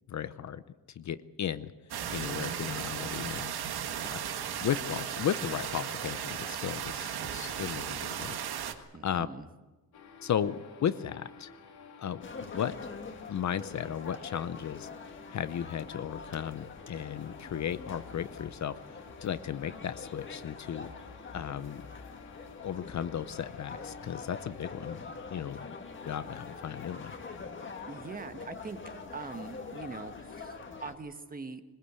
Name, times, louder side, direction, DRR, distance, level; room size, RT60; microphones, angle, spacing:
voice 1, 0.1-0.6 1.0-1.7 2.1-3.5 4.1-4.2 4.6-8.4 8.7-9.3 10.2-11.5 12.0-12.7 13.3-14.9 15.3-18.8 19.2-20.9 21.3-21.8 22.6-25.0 25.3-25.6 26.0-27.1, left 9 dB, 50° left, 13 dB, 0.7 m, -35 dB
sound 1, 1.9-8.7, right 9 dB, 80° right, 1.7 m, -36 dB
voice 2, 3.9-4.2 8.9-9.5 25.5-25.6 27.9-28.8 29.1-31.6, right 4 dB, 25° right, 8 dB, 1.3 m, -43 dB
sound 2, 9.9-28.3, left 6 dB, 80° left, 3.2 m, -52 dB
sound 3, 12.2-30.9, left 4 dB, 30° left, 1.8 m, -45 dB
21.0 x 20.5 x 8.1 m, 1.2 s
wide cardioid pair, 170°, 38 cm